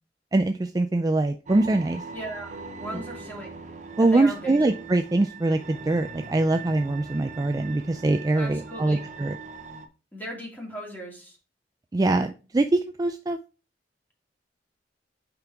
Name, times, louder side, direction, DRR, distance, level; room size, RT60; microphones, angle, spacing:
voice 1, 0.3-2.0 4.0-9.4 11.9-13.4, right 2 dB, 20° right, 7 dB, 0.3 m, -23 dB
sound 1, 1.5-9.9, right 4 dB, 45° right, 0.8 m, -41 dB
voice 2, 2.1-2.5 2.8-3.5 4.0-4.6 8.4-9.0 10.1-11.4, right 1 dB, 10° left, -1 dB, 2.5 m, -37 dB
sound 2, 2.5-5.7, right 1 dB, 70° right, 1.8 m, -48 dB
5.8 x 5.2 x 4.6 m, 0.34 s
head